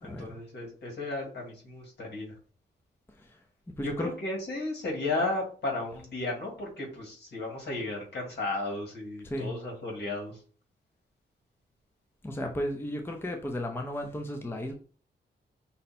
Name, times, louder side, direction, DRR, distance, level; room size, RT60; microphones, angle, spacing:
voice 1, 0.0-2.3 3.8-10.4, left 2 dB, 65° left, 0 dB, 1.9 m, -34 dB
voice 2, 3.7-4.1 9.2-9.5 12.2-14.7, left 1 dB, 10° left, 3 dB, 0.5 m, -34 dB
5.3 x 2.1 x 4.2 m, 0.41 s
wide cardioid pair, 120°, 18 cm